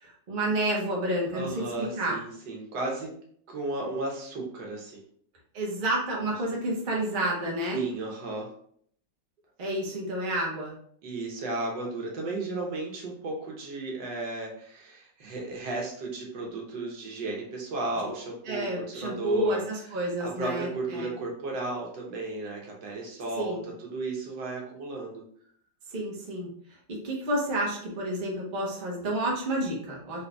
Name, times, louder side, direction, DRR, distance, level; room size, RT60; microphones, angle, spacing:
voice 1, 0.0-2.2 5.5-7.8 9.6-10.7 18.0-18.1 18.5-21.1 23.4-23.6 25.9-26.5 26.9-30.2, right 1 dB, 35° right, -3 dB, 0.8 m, -30 dB
voice 2, 1.3-3.1 3.5-5.0 7.7-8.5 11.0-19.6 20.0-25.2, right 2 dB, 75° right, -1 dB, 1.6 m, -34 dB
4.1 x 3.6 x 2.3 m, 0.62 s
omnidirectional pair, 2.0 m